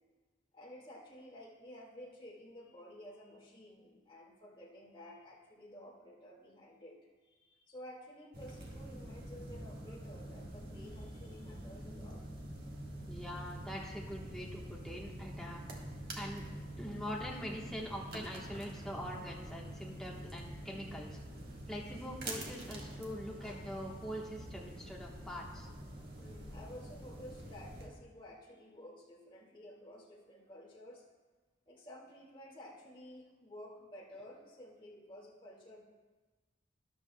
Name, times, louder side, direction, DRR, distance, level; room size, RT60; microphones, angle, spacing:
voice 1, 0.5-12.2 26.2-31.0 31.7-35.8, left 1 dB, 25° left, -4 dB, 2.0 m, -53 dB
sound 1, 8.3-27.9, right 1 dB, 55° right, 1.5 m, -46 dB
voice 2, 13.1-15.6 16.2-16.4 16.8-21.2 21.7-25.7, equal, 5° left, -3 dB, 1.2 m, -43 dB
13.0 x 11.0 x 2.2 m, 1.3 s
head